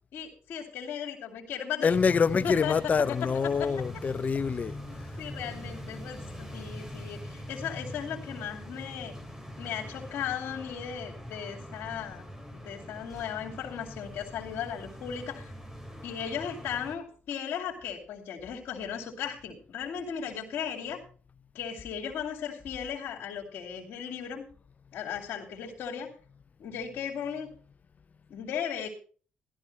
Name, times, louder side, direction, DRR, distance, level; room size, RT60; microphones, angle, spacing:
voice 1, 0.1-1.9 2.4-2.8 3.1-3.7 4.8-9.1 9.6-12.3 12.6-15.5 16.0-21.0 21.5-24.4 24.9-26.1 26.6-27.5 28.3-28.9, left 8 dB, 75° left, 2.6 m, -36 dB
voice 2, 1.8-4.8, left 5 dB, 40° left, 0.7 m, -26 dB
sound 1, 1.9-17.0, left 1 dB, 10° right, 2.8 m, -42 dB
15.0 x 12.5 x 3.2 m
cardioid pair, 70°, 4 cm